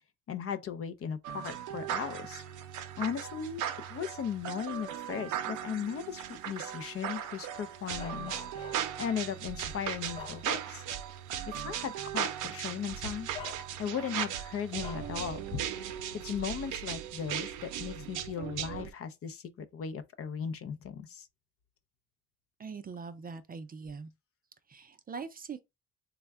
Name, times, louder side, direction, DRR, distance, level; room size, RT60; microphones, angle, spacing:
voice 1, 0.3-2.4 3.0-3.6 3.9-10.8 11.5-21.3, left 7 dB, 50° left, 0.5 m, -37 dB
sound 1, 1.2-18.9, right 10 dB, 80° right, 0.6 m, -38 dB
Bark, 8.0-9.1 9.6-10.9 11.3-11.5 12.6-12.8 13.3-14.1 14.8-15.2, left 5 dB, 15° left, 0.8 m, -46 dB
voice 2, 22.6-24.1 24.7-25.6, right 5 dB, 30° right, 0.4 m, -42 dB
3.4 x 2.1 x 3.4 m
cardioid pair, 90°, 30 cm